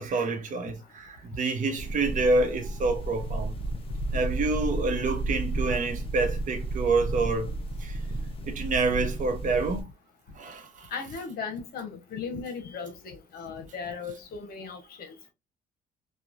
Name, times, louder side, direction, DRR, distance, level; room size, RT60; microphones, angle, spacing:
voice 1, 0.0-3.5 4.1-8.0 8.4-9.9 10.3-10.9, right 3 dB, 50° right, 0.8 m, -28 dB
sound 1, 1.8-9.8, right 2 dB, 35° left, 0.7 m, -32 dB
voice 2, 10.9-15.3, left 5 dB, 65° left, 0.9 m, -37 dB
3.0 x 2.2 x 2.5 m
cardioid pair, 110°, 17 cm